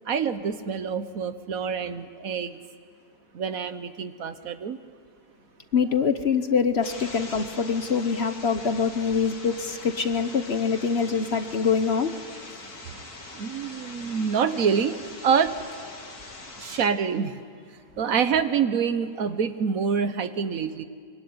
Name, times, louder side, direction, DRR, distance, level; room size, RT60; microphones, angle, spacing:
voice 1, 0.1-2.6 3.3-4.8 13.3-15.5 16.6-17.4 18.0-20.8, right 6 dB, 65° right, 11 dB, 1.4 m, -26 dB
voice 2, 5.7-12.1, left 6 dB, 45° left, 10 dB, 1.1 m, -24 dB
sound 1, 6.8-16.9, left 2 dB, 70° left, 3.2 m, -42 dB
24.5 x 24.0 x 9.6 m, 2.1 s
omnidirectional pair, 1.6 m